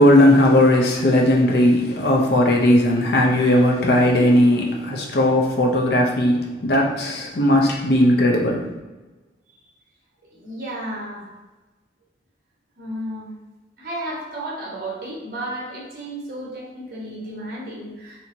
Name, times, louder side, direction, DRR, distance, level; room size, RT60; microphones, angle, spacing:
voice 1, 0.0-8.7, left 1 dB, 60° left, -1 dB, 0.6 m, -17 dB
voice 2, 10.3-11.3 12.8-13.3 13.8-18.3, right 1 dB, 55° right, -5 dB, 1.3 m, -33 dB
4.3 x 2.8 x 2.7 m, 1.2 s
head